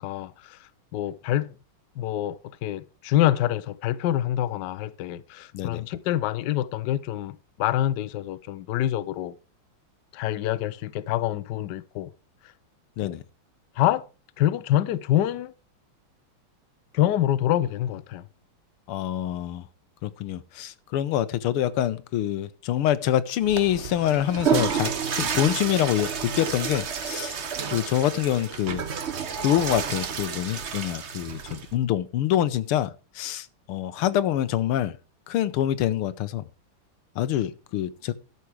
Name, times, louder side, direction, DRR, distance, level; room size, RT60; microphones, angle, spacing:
voice 1, 0.0-1.6 2.0-9.3 10.1-12.1 13.0-13.1 13.8-14.1 14.4-15.5 16.9-18.2, left 12 dB, 70° left, 1.1 m, -26 dB
voice 2, 18.9-19.7 20.0-27.4 27.7-28.8 29.4-34.9 35.3-36.4 37.1-38.1, left 12 dB, 90° left, 1.7 m, -26 dB
Water / Toilet flush, 23.4-31.8, right 7 dB, 45° right, 0.9 m, -30 dB
12.5 x 7.0 x 4.7 m
omnidirectional pair, 2.4 m